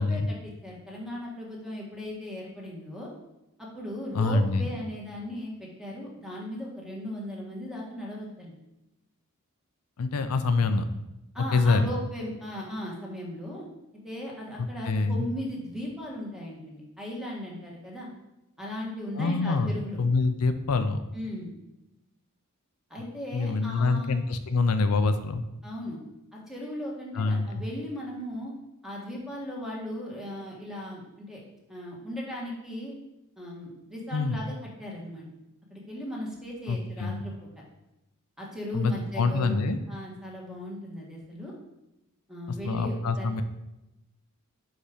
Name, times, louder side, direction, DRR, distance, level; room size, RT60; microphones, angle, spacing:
voice 1, 0.0-3.1 3.6-8.5 11.3-13.7 14.0-18.1 18.6-20.0 21.1-21.5 22.9-24.1 25.6-26.0 26.3-28.5 28.8-31.4 31.7-32.9 33.4-34.5 34.8-35.2 35.7-37.5 38.4-39.6 39.9-41.5 42.3-43.3, left 1 dB, ahead, -3 dB, 1.5 m, -37 dB
voice 2, 4.1-4.7 10.0-10.8 11.5-11.9 14.6-15.3 19.2-21.0 23.3-25.4 27.1-27.6 34.1-34.4 36.7-37.2 38.7-39.8 42.6-43.4, left 3 dB, 90° left, 9 dB, 0.5 m, -25 dB
5.2 x 5.0 x 5.0 m, 0.93 s
head